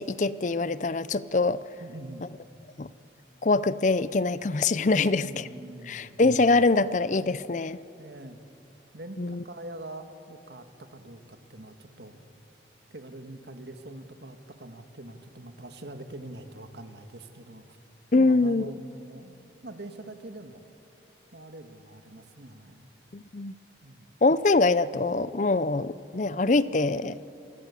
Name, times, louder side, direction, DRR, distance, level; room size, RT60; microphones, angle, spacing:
voice 1, 0.0-1.6 2.8-2.9 3.4-5.5 5.9-7.8 9.2-9.4 18.1-18.7 23.1-23.5 24.2-27.2, left 3 dB, 45° left, 16 dB, 0.6 m, -24 dB
voice 2, 1.8-2.3 4.9-6.2 8.0-8.4 8.9-12.4 12.9-17.8 18.1-20.6 21.3-22.9 23.8-24.1, right 1 dB, 70° right, 7 dB, 1.8 m, -44 dB
28.0 x 20.0 x 8.4 m, 2.6 s
head